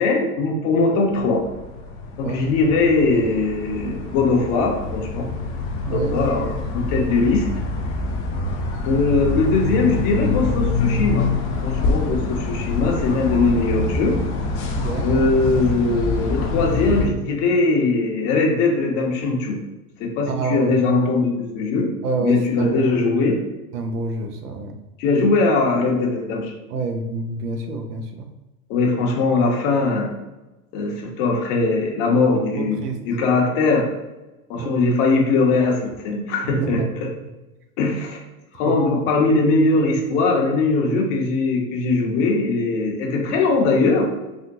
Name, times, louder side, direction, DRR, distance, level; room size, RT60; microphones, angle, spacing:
voice 1, 0.0-1.4 2.2-5.3 5.9-7.5 8.9-11.3 11.6-14.2 15.0-19.6 20.0-21.9 22.2-23.4 25.0-26.5 28.7-30.1 30.7-33.9 34.5-37.1 37.8-38.2 38.5-44.1, left 3 dB, 55° left, 0 dB, 0.9 m, -20 dB
sound 1, 1.1-17.1, left 3 dB, 30° left, 0.4 m, -26 dB
voice 2, 5.8-6.1 14.7-15.1 20.3-20.7 22.0-23.0 23.7-24.7 26.7-28.0 32.6-33.0 34.5-34.7 36.6-36.9 38.7-38.8, right 4 dB, 90° right, 4 dB, 0.6 m, -27 dB
3.5 x 2.2 x 2.6 m, 1.1 s
hypercardioid pair, 95°, 45 cm